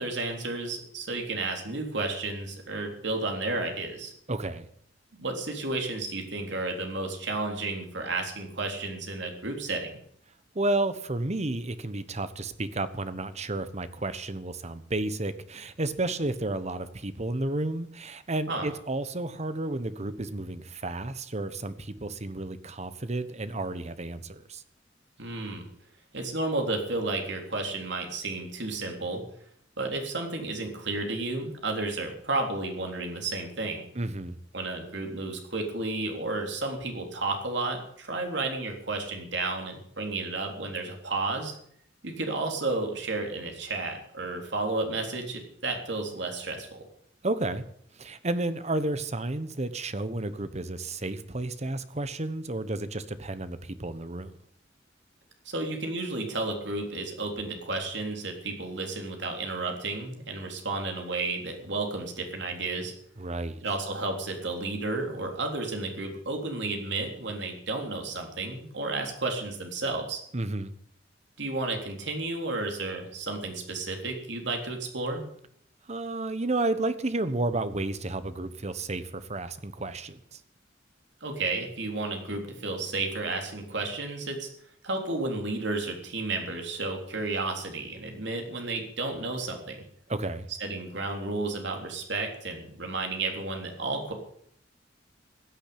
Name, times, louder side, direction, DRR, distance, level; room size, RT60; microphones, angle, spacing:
voice 1, 0.0-4.1 5.2-9.9 18.5-18.7 25.2-25.7 26.1-29.2 29.8-33.8 34.5-41.6 42.0-46.8 55.5-62.9 63.6-70.2 71.4-75.2 81.2-84.5 84.8-89.9 90.6-94.1, right 2 dB, 65° right, 3.6 m, -32 dB
voice 2, 4.3-4.7 10.5-24.6 33.9-34.4 47.2-47.6 47.9-54.3 63.2-63.6 70.3-70.7 75.9-80.4 90.1-90.5, right 2 dB, 35° right, 1.2 m, -32 dB
16.0 x 9.2 x 8.7 m
head